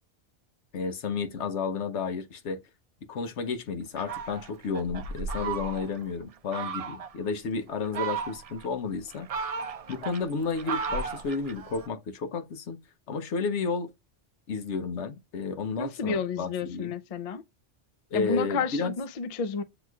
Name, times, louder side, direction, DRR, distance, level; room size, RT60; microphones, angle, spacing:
voice 1, 0.7-2.6 3.1-9.5 9.9-12.8 13.1-13.9 14.5-16.9 18.1-18.9, left 5 dB, 90° left, 1.1 m, -32 dB
Fowl, 4.0-6.0 6.5-7.1 7.7-8.7 9.1-11.9, right 5 dB, 60° right, 0.4 m, -35 dB
voice 2, 15.8-17.4 18.1-19.6, left 5 dB, 50° left, 0.4 m, -31 dB
7.8 x 2.9 x 2.3 m
omnidirectional pair, 1.1 m